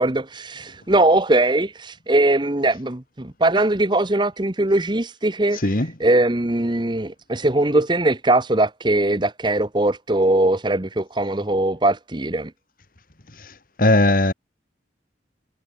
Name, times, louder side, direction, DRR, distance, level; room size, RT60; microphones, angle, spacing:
voice 1, 0.0-5.7 6.0-12.5, right 2 dB, 25° right, 1.1 m, -20 dB
voice 2, 5.5-5.9 13.3-14.3, left 1 dB, 50° left, 2.1 m, -19 dB
head